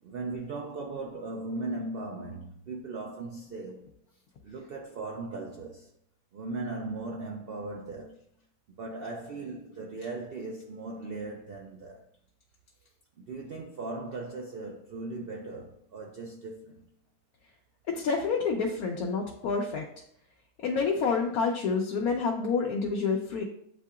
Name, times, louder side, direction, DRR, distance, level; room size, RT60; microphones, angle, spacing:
voice 1, 0.0-5.9 6.3-8.2 8.7-12.1 13.2-17.0, right 3 dB, 75° right, 0.5 m, -38 dB
voice 2, 17.9-19.8 20.6-23.4, left 5 dB, 85° left, 1.1 m, -28 dB
8.1 x 2.7 x 2.4 m
omnidirectional pair, 1.5 m